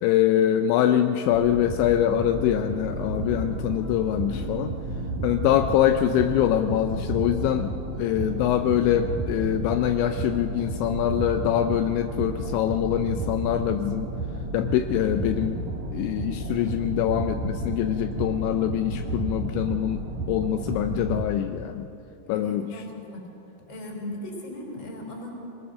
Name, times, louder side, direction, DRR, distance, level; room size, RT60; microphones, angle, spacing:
voice 1, 0.0-4.7 5.2-14.1 14.5-15.6 15.9-20.0 20.3-21.9 22.3-22.8, left 11 dB, 85° left, 7 dB, 2.6 m, -24 dB
sound 1, 1.3-21.2, right 2 dB, 65° right, 1.9 m, -32 dB
Guitar, 2.9-7.2, right 1 dB, 60° left, 4.6 m, -44 dB
voice 2, 22.3-23.2 23.7-25.3, left 1 dB, 25° left, 0 dB, 3.8 m, -37 dB
22.0 x 20.5 x 6.4 m, 2.8 s
omnidirectional pair, 6.0 m